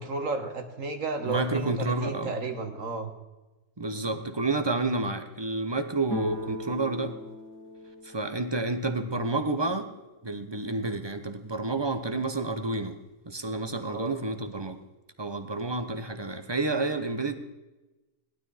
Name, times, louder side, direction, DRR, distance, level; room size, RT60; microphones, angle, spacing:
voice 1, 0.0-3.1 13.9-14.1, right 3 dB, 55° right, 6 dB, 1.9 m, -33 dB
voice 2, 1.2-2.3 3.8-7.2 8.0-9.9 10.2-13.0 13.3-14.8 15.2-17.4, right 2 dB, 20° right, 8 dB, 0.8 m, -30 dB
sound 1, 6.0-9.7, left 1 dB, 5° left, 2.2 m, -40 dB
18.0 x 12.0 x 4.2 m, 1.1 s
omnidirectional pair, 1.7 m